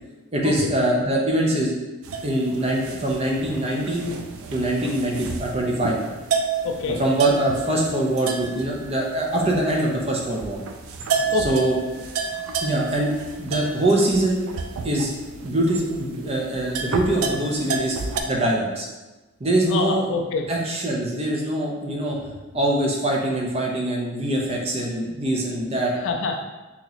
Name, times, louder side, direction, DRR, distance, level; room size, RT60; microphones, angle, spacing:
voice 1, 0.3-1.7 2.2-4.1 4.5-6.0 7.0-10.6 11.4-11.8 12.6-13.1 13.4-14.4 14.8-15.1 15.4-18.0 18.3-18.9 19.4-20.1 20.5-22.2 22.5-25.9, right 1 dB, 25° right, -2 dB, 0.5 m, -23 dB
sound 1, 2.0-18.2, right 5 dB, 75° right, 0.4 m, -31 dB
voice 2, 6.6-7.0 11.3-11.6 19.7-20.5 25.9-26.4, left 4 dB, 55° left, 3 dB, 0.3 m, -26 dB
2.9 x 2.8 x 3.9 m, 1.2 s
head